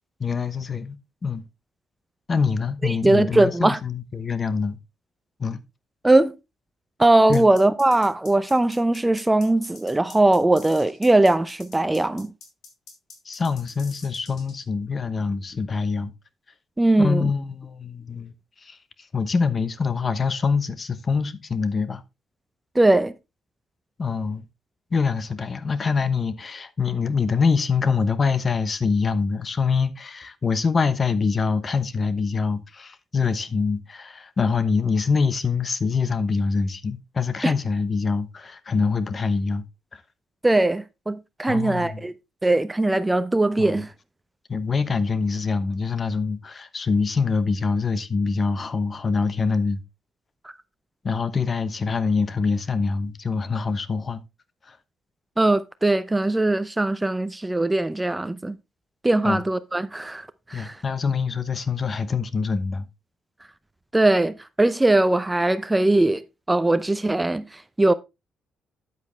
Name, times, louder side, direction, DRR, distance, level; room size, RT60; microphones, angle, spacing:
voice 1, 0.2-1.4 2.3-4.8 5.4-5.6 7.3-7.4 13.2-16.1 17.0-18.3 18.6-18.8 19.1-22.0 24.0-24.4 24.9-39.6 39.9-40.0 41.5-42.0 43.6-43.7 44.5-49.8 51.0-54.2 54.7-54.8 59.2-59.4 60.5-62.8, left 5 dB, 35° left, 0.9 m, -24 dB
voice 2, 2.8-3.8 6.0-6.3 7.0-12.3 16.8-17.3 22.7-23.1 37.4-37.5 40.4-42.1 42.4-43.9 55.4-58.5 59.0-60.8 63.9-67.9, right 2 dB, 15° right, 0.6 m, -20 dB
sound 1, 7.3-14.6, left 4 dB, 65° left, 3.6 m, -45 dB
9.5 x 8.2 x 3.2 m
cardioid pair, 90°, 0 cm